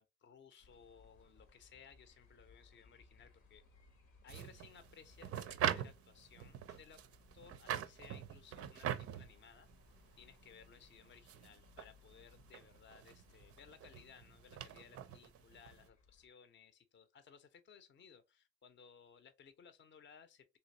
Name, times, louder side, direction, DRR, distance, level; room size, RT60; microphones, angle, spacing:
voice 1, 0.0-3.6 4.2-7.0 7.3-20.6, left 7 dB, 40° left, 0.6 m, -61 dB
sound 1, 0.6-16.3, left 4 dB, 80° left, 1.0 m, -66 dB
sound 2, 4.3-15.9, right 10 dB, 50° right, 0.4 m, -43 dB
3.3 x 2.7 x 2.6 m
supercardioid pair, 55°, 30 cm